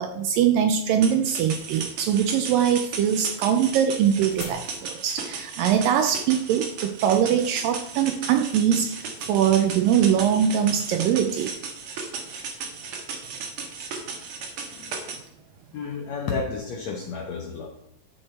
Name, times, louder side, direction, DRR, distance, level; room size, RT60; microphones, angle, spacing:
voice 1, 0.0-11.5, right 9 dB, 85° right, 7 dB, 2.0 m, -22 dB
sound 1, 1.0-15.2, right 5 dB, 65° right, 1.4 m, -35 dB
sound 2, 3.5-7.8, left 5 dB, 65° left, 3.3 m, -46 dB
voice 2, 15.7-17.7, left 5 dB, 85° left, 2 dB, 1.5 m, -31 dB
12.5 x 6.7 x 4.3 m, 0.79 s
omnidirectional pair, 4.6 m